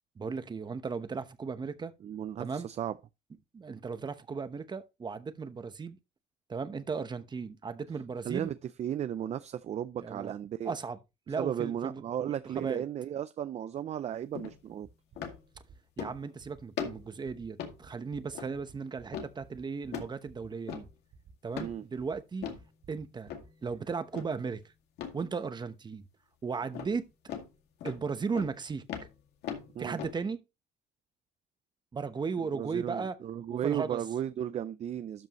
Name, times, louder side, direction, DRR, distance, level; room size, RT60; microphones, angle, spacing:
voice 1, 0.2-1.9 2.4-2.7 3.5-6.0 6.5-8.5 10.0-10.3 10.6-11.0 11.3-12.8 16.0-20.9 21.4-22.5 22.9-23.3 23.6-24.6 25.1-26.0 26.4-27.1 27.8-28.8 29.8-30.4 31.9-33.2 33.5-34.0, right 5 dB, 25° right, 0.9 m, -36 dB
voice 2, 2.0-2.9 8.2-10.7 11.4-14.9 21.6-21.9 29.8-30.0 32.5-35.3, right 10 dB, 40° right, 0.4 m, -35 dB
sound 1, 14.3-14.6 15.2-15.4 16.0-16.3 16.8-17.1 17.6-17.8 18.3-18.6 19.1-19.3 19.9-20.2 20.7-20.9 21.5-21.8 22.4-22.7 23.3-23.5 24.1-24.4 25.0-25.2 26.7-27.0 27.3-27.5 27.8-28.0 28.3-28.6 28.9-30.2, left 8 dB, 80° left, 2.1 m, -39 dB
sound 2, 14.8-23.7, right 8 dB, 70° right, 5.2 m, -55 dB
12.5 x 5.4 x 3.0 m
cardioid pair, 110°, 17 cm